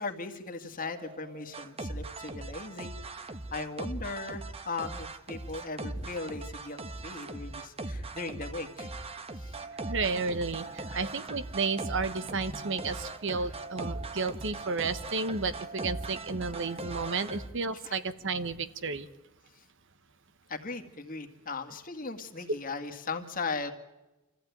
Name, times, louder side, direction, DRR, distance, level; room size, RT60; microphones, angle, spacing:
voice 1, 0.0-2.9 3.5-8.9 9.4-9.6 10.9-11.1 13.4-13.5 16.7-16.8 17.8-17.9 20.5-23.7, left 3 dB, 40° left, 6 dB, 2.0 m, -38 dB
sound 1, 0.8-17.5, right 2 dB, 25° right, 1.2 m, -40 dB
voice 2, 9.8-19.1 22.5-22.6, right 4 dB, 60° right, 12 dB, 1.1 m, -32 dB
26.5 x 15.0 x 9.4 m, 1.1 s
head